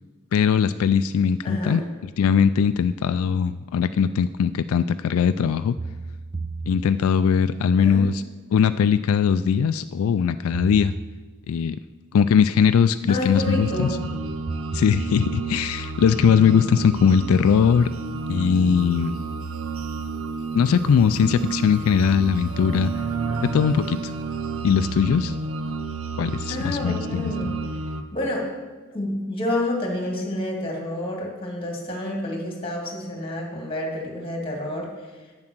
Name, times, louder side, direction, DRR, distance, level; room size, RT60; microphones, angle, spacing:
voice 1, 0.3-1.8 2.2-5.8 6.7-8.2 8.5-10.9 11.5-11.8 12.1-13.9 14.7-17.9 18.3-19.1 20.5-22.9 23.4-24.1 24.6-25.3 26.2-27.3, left 7 dB, 80° left, 12 dB, 0.3 m, -20 dB
voice 2, 1.4-1.8 7.8-8.0 13.1-14.0 26.5-27.6 28.1-28.5 28.9-35.3, left 1 dB, 25° left, 0 dB, 2.1 m, -29 dB
sound 1, 5.8-7.4 10.5-11.6 14.5-15.8, right 3 dB, 25° right, 0.5 m, -34 dB
sound 2, 13.3-28.0, right 4 dB, 75° right, 0.7 m, -31 dB
8.9 x 7.4 x 6.1 m, 1.3 s
head